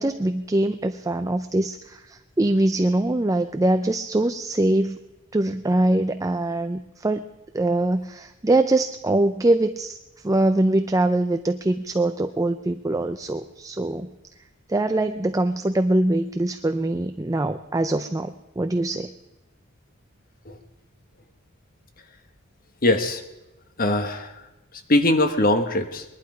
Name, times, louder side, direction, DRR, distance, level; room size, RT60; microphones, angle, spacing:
voice 1, 0.0-2.0 2.4-5.0 5.3-7.2 7.5-10.0 10.2-14.1 14.7-19.1, right 2 dB, 15° right, 8 dB, 0.4 m, -23 dB
voice 2, 22.8-23.2 23.8-24.3 24.9-26.0, left 1 dB, 45° left, 8 dB, 1.2 m, -21 dB
21.0 x 11.5 x 5.0 m, 1.0 s
head